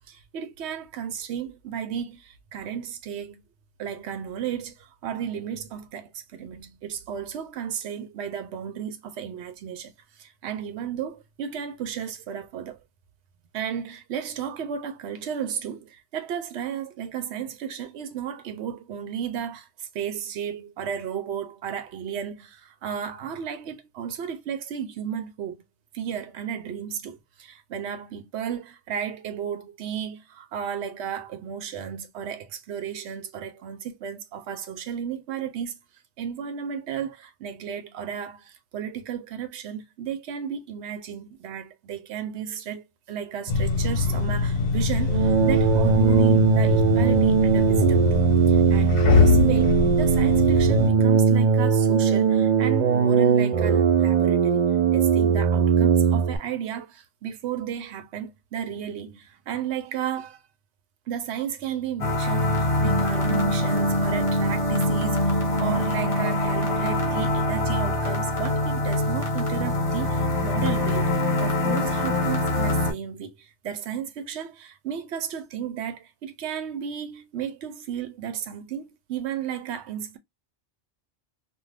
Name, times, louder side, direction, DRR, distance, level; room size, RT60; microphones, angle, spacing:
voice 1, 0.0-3.4 3.8-12.8 13.5-25.6 25.9-35.8 36.2-54.6 54.9-60.4 61.1-80.2, right 8 dB, 80° right, 0.9 m, -33 dB
sound 1, 43.5-50.9, left 5 dB, 60° left, 0.9 m, -23 dB
sound 2, 45.1-56.4, right 6 dB, 55° right, 0.5 m, -20 dB
sound 3, 62.0-72.9, left 1 dB, 30° left, 1.0 m, -24 dB
2.4 x 2.3 x 3.2 m
omnidirectional pair, 1.1 m